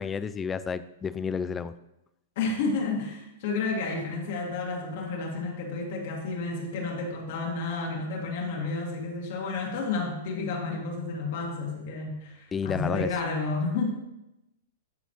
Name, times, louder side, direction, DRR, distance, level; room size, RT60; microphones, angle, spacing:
voice 1, 0.0-1.7 12.5-13.1, left 6 dB, 20° left, 14 dB, 0.3 m, -31 dB
voice 2, 2.4-13.8, left 3 dB, 60° left, 0 dB, 2.0 m, -31 dB
12.5 x 4.2 x 3.0 m, 0.90 s
hypercardioid pair, 125°, 0 cm